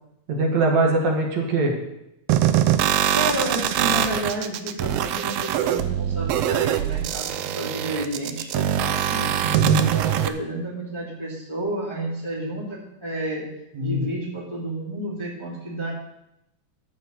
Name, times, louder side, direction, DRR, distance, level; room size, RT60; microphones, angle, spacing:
voice 1, 0.3-1.7 9.4-9.8 13.8-14.0, right 2 dB, 65° right, 0 dB, 2.7 m, -22 dB
sound 1, 2.3-10.3, right 11 dB, 90° right, 1.4 m, -23 dB
voice 2, 3.1-9.3 9.7-13.5 13.8-15.9, right 1 dB, 10° left, -5 dB, 1.9 m, -30 dB
13.0 x 4.5 x 7.2 m, 0.85 s
omnidirectional pair, 3.5 m